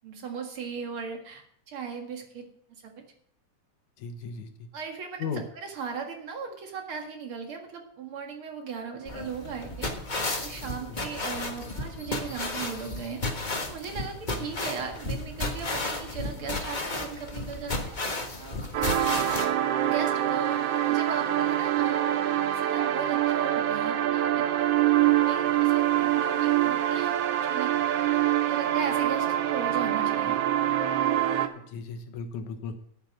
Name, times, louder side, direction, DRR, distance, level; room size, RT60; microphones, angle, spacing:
voice 1, 0.0-2.5 2.8-2.9 4.7-5.3 5.6-9.9 10.4-13.2 13.6-18.0 18.4-18.7 19.0-19.3 19.7-20.6 20.9-22.1 22.5-24.8 25.2-27.9 28.4-30.4, right 6 dB, 50° right, 3 dB, 2.5 m, -37 dB
voice 2, 4.0-4.7 5.2-5.4 10.7-11.0 14.3-14.5 31.7-32.7, left 5 dB, 85° left, 7 dB, 2.6 m, -36 dB
sound 1, 9.1-19.5, left 2 dB, 35° left, 0.7 m, -33 dB
sound 2, 18.7-31.5, right 12 dB, 65° right, 1.7 m, -25 dB
10.5 x 8.9 x 6.2 m, 0.66 s
omnidirectional pair, 3.3 m